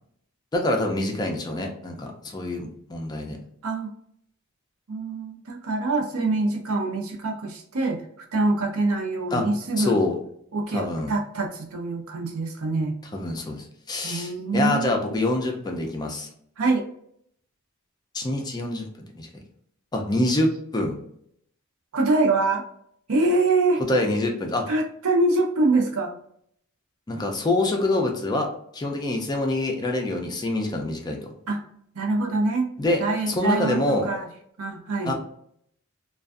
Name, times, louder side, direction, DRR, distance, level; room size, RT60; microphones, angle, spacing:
voice 1, 0.5-3.4 9.3-9.4 9.8-10.2 10.7-11.1 13.1-16.3 18.1-18.9 19.2-19.3 19.9-21.0 23.9-24.6 27.1-28.5 28.7-31.2 32.8-34.1 35.1-35.2, left 2 dB, 20° left, 2 dB, 0.3 m, -25 dB
voice 2, 3.6-3.9 4.9-8.0 8.3-10.0 10.5-13.0 14.0-15.3 16.6-16.9 21.9-22.6 23.1-23.8 24.7-26.1 31.5-31.6 31.9-32.7 33.0-34.3 34.6-35.1, right 2 dB, 80° right, 1 dB, 0.6 m, -24 dB
2.5 x 2.2 x 2.3 m, 0.69 s
head